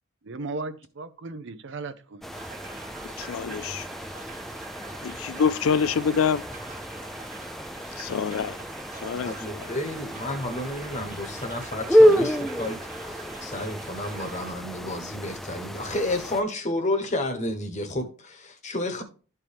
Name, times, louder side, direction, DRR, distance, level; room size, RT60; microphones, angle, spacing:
voice 1, 0.2-2.3, right 3 dB, 60° right, 0.7 m, -36 dB
sound 1, 2.2-16.4, equal, ahead, 0.4 m, -28 dB
sound 2, 2.3-14.5, right 4 dB, 40° right, 1.2 m, -44 dB
voice 2, 3.2-3.9 5.0-6.4 8.0-8.6 9.0-9.6, left 6 dB, 80° left, 0.4 m, -26 dB
voice 3, 9.2-12.8 13.1-19.0, left 1 dB, 35° left, 1.2 m, -31 dB
12.5 x 4.5 x 3.4 m
head